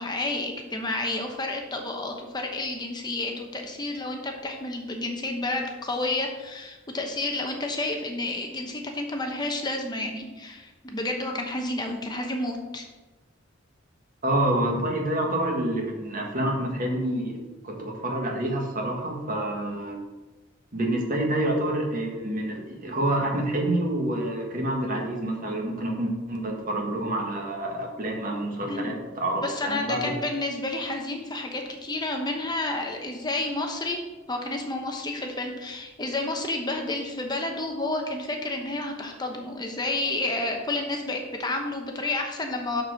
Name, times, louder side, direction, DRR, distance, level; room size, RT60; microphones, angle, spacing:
voice 1, 0.0-12.9 28.7-28.9 29.4-34.0 34.3-42.8, left 2 dB, 20° left, 3 dB, 0.9 m, -30 dB
voice 2, 14.2-17.4 17.6-20.0 20.7-30.1, right 1 dB, 45° right, 0 dB, 1.8 m, -27 dB
6.4 x 6.1 x 6.4 m, 1.2 s
head